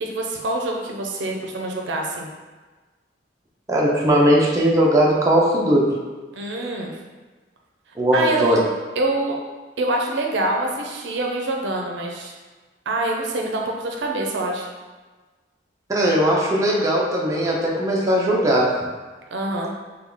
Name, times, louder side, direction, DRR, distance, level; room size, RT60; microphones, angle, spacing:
voice 1, 0.0-2.3 6.3-7.0 8.1-8.6 9.0-9.4 9.8-12.3 12.9-14.7 19.3-19.7, right 2 dB, 75° right, 0 dB, 0.5 m, -25 dB
voice 2, 3.7-5.9 8.0-8.6 15.9-18.8, equal, 20° right, -4 dB, 0.5 m, -18 dB
3.5 x 2.2 x 3.6 m, 1.3 s
head